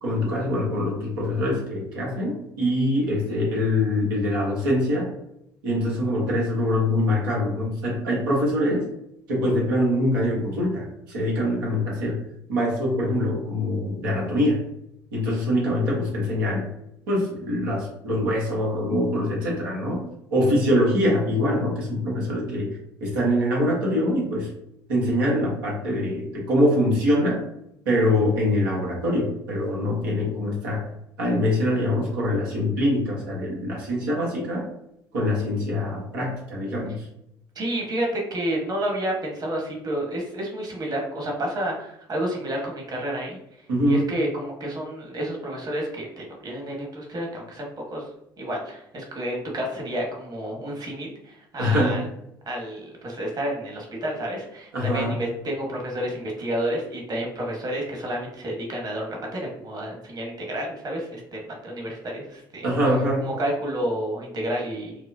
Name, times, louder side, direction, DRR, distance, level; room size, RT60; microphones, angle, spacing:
voice 1, 0.0-5.1 5.6-8.9 9.3-12.2 12.5-14.7 15.1-16.7 17.1-20.0 20.3-22.7 23.0-24.5 24.9-27.4 27.8-30.8 31.2-34.7 35.1-37.1 43.7-44.1 51.6-52.0 54.7-55.2 62.6-63.3, left 1 dB, 80° right, -3 dB, 1.3 m, -24 dB
voice 2, 37.5-43.4 43.9-48.1 48.4-52.1 52.5-62.7 63.2-64.9, right 1 dB, 35° right, 0 dB, 1.3 m, -30 dB
4.7 x 2.1 x 2.7 m, 0.79 s
hypercardioid pair, 60°, 11 cm